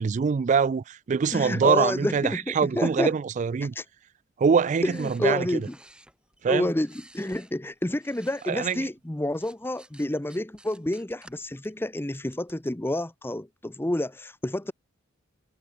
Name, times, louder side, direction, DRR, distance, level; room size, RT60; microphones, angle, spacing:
voice 1, 0.0-3.7 4.4-5.6 6.4-6.7 8.5-8.8, right 6 dB, 40° right, 0.3 m, -24 dB
voice 2, 1.3-3.1 3.6-3.8 4.8-5.8 6.5-14.7, left 1 dB, 10° left, 0.7 m, -29 dB
sound 1, 4.9-8.8 9.2-12.7, right 1 dB, 5° right, 3.5 m, -55 dB
head